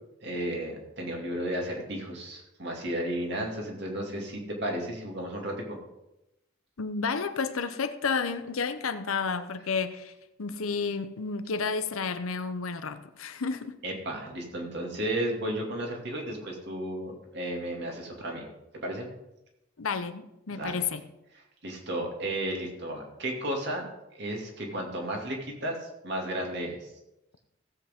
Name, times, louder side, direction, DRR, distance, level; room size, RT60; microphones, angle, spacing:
voice 1, 0.2-5.8 13.8-18.4 18.7-19.1 20.5-20.8 21.6-23.8 24.1-26.9, right 1 dB, 55° right, 0 dB, 2.4 m, -33 dB
voice 2, 6.8-10.1 10.4-13.8 19.8-21.0, left 5 dB, 85° left, 10 dB, 0.8 m, -31 dB
16.5 x 8.0 x 3.6 m, 0.91 s
head